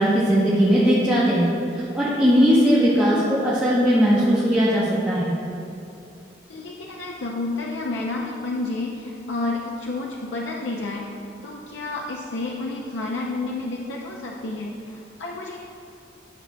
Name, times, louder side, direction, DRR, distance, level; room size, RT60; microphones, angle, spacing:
voice 1, 0.0-1.5 1.7-5.3, equal, 5° right, -10 dB, 0.8 m, -19 dB
voice 2, 6.5-11.1 11.4-15.6, left 2 dB, 90° left, -1 dB, 0.5 m, -30 dB
10.0 x 6.4 x 2.2 m, 2.7 s
head